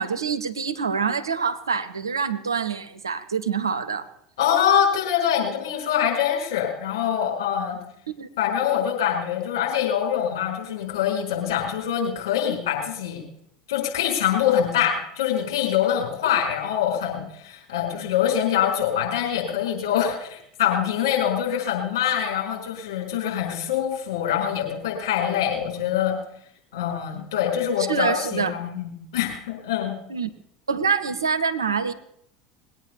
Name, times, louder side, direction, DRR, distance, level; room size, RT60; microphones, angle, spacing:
voice 1, 0.0-4.1 8.1-8.3 27.9-28.5 30.1-30.3 30.7-31.9, right 6 dB, 85° right, 11 dB, 1.0 m, -26 dB
voice 2, 4.4-7.8 8.4-13.2 13.7-26.2 26.7-29.9, left 9 dB, 70° left, 0 dB, 5.1 m, -24 dB
20.5 x 9.1 x 6.9 m, 0.73 s
figure-of-eight pair, 75°, 2 cm